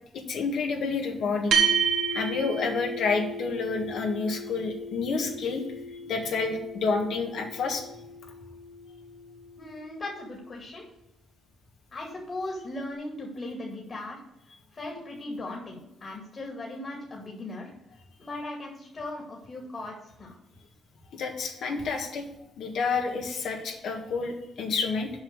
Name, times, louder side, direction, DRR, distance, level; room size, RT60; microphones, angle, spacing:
voice 1, 0.1-1.6 2.1-5.6 6.1-7.8 21.1-22.2 22.6-25.1, left 4 dB, 70° left, 3 dB, 1.6 m, -29 dB
sound 1, 1.5-10.2, right 5 dB, 75° right, 1.8 m, -32 dB
voice 2, 9.6-10.8 11.9-14.2 14.7-17.7 18.2-20.4, left 2 dB, 40° left, 0 dB, 2.4 m, -38 dB
7.1 x 5.5 x 6.7 m, 0.89 s
cardioid pair, 90°, 0 cm